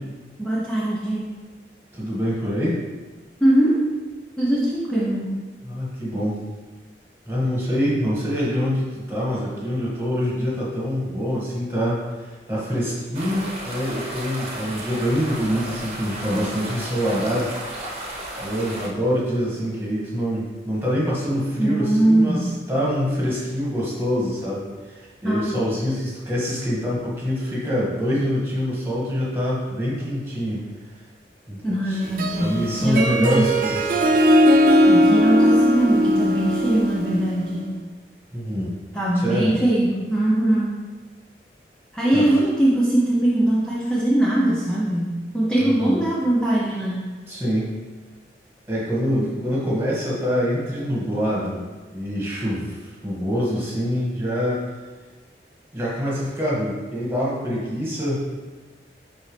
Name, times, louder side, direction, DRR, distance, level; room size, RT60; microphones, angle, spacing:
voice 1, 0.4-1.3 3.4-3.9 4.4-5.3 21.6-22.5 25.2-25.6 31.6-33.5 34.8-37.7 38.9-40.8 41.9-47.1 49.1-49.3, right 1 dB, 5° left, -7 dB, 0.8 m, -21 dB
voice 2, 1.9-2.8 5.6-6.4 7.3-17.5 17.8-17.9 18.4-30.6 31.5-31.6 31.9-32.0 32.4-34.0 38.3-38.7 39.1-39.5 42.1-42.2 45.6-46.0 47.3-47.7 48.7-51.7 51.9-54.6 55.7-58.3, equal, 15° right, -6 dB, 2.0 m, -25 dB
sound 1, 13.1-18.9, right 1 dB, 35° right, 1.2 m, -33 dB
Harp, 32.0-37.6, equal, 50° right, 0.5 m, -19 dB
11.0 x 4.2 x 3.4 m, 1.3 s
head